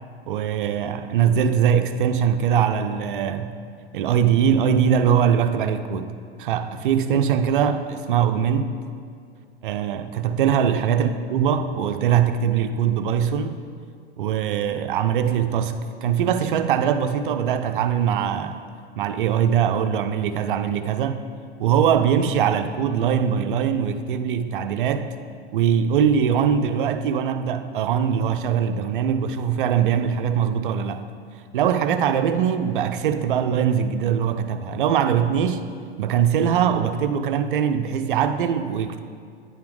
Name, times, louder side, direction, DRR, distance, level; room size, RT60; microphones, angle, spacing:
voice 1, 0.3-3.5 3.9-8.7 9.6-13.6 14.2-18.6 19.0-21.2 21.6-25.1 25.5-31.0 31.5-35.7 36.0-39.0, right 8 dB, 55° right, 9 dB, 0.5 m, -22 dB
9.4 x 5.7 x 3.9 m, 2.3 s
figure-of-eight pair, 100°, 32 cm